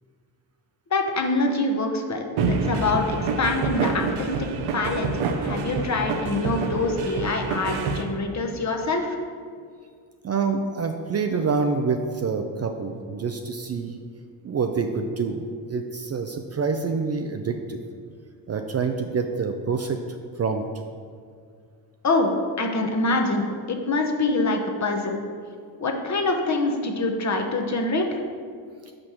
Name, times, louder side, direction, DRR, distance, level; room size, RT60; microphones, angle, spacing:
voice 1, 0.9-4.5 4.7-9.2 22.0-25.2 25.8-28.2, left 2 dB, 35° left, 3 dB, 0.9 m, -25 dB
sound 1, 2.4-8.0, right 4 dB, 80° right, 0.8 m, -27 dB
voice 2, 10.2-14.0 14.4-17.8 18.5-20.0 20.4-20.6 28.9-29.0, right 5 dB, 35° right, 5 dB, 0.5 m, -26 dB
5.3 x 4.2 x 5.9 m, 2.1 s
supercardioid pair, 70°, 47 cm